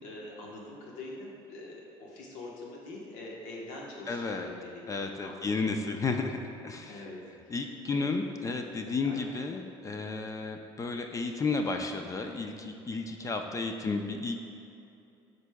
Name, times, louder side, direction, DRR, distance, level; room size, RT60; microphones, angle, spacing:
voice 1, 0.0-5.7 6.9-8.1 8.8-9.3, left 2 dB, 80° left, -2 dB, 1.1 m, -45 dB
voice 2, 4.1-4.5 4.9-6.9 7.5-14.5, left 3 dB, 25° left, 5 dB, 0.4 m, -32 dB
8.1 x 5.2 x 2.2 m, 2.6 s
supercardioid pair, 95°, 12 cm